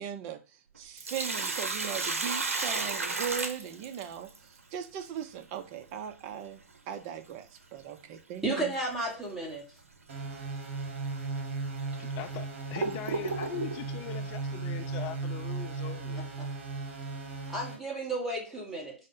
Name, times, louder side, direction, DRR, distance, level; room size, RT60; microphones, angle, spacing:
voice 1, 0.0-8.7, right 8 dB, 30° right, 0.4 m, -39 dB
Sink (filling or washing), 0.8-4.4 6.8-6.9 8.7-9.0 9.4-9.5 10.3-10.5 11.2-11.3 11.9-13.8, right 3 dB, 70° right, 0.6 m, -33 dB
voice 2, 8.4-9.6 16.2-16.5 17.5-18.9, right 2 dB, 5° right, 1.1 m, -33 dB
sound 1, 10.1-17.8, right 3 dB, 50° right, 1.1 m, -36 dB
voice 3, 12.0-16.2, left 10 dB, 30° left, 0.4 m, -41 dB
5.0 x 2.0 x 3.7 m
figure-of-eight pair, 120°, 8 cm